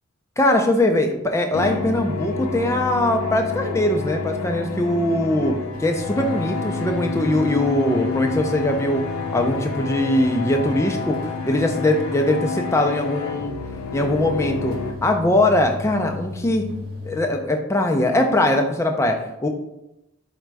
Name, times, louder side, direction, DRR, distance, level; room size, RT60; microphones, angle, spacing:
voice 1, 0.4-9.0 9.3-11.2 11.4-13.5 13.9-14.7 15.0-16.6 17.1-19.5, left 1 dB, 15° left, 4 dB, 0.3 m, -21 dB
sound 1, 1.5-14.9, left 4 dB, 75° left, 0.4 m, -29 dB
sound 2, 5.7-17.3, left 3 dB, 70° right, 0.9 m, -38 dB
5.0 x 2.2 x 4.6 m, 0.91 s
head